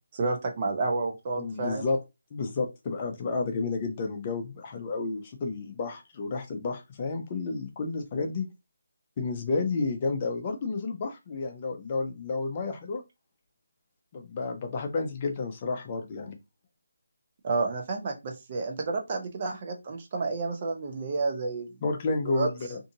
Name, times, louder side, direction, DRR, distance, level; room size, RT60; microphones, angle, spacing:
voice 1, 0.1-1.9 17.4-21.7 22.2-22.5, right 3 dB, 35° right, 2 dB, 0.8 m, -30 dB
voice 2, 1.4-2.0 2.3-8.5 9.2-13.0 14.1-16.4 21.8-22.8, left 3 dB, 30° left, 4 dB, 0.6 m, -31 dB
2.7 x 2.5 x 2.7 m, 0.23 s
figure-of-eight pair, 160°, 0 cm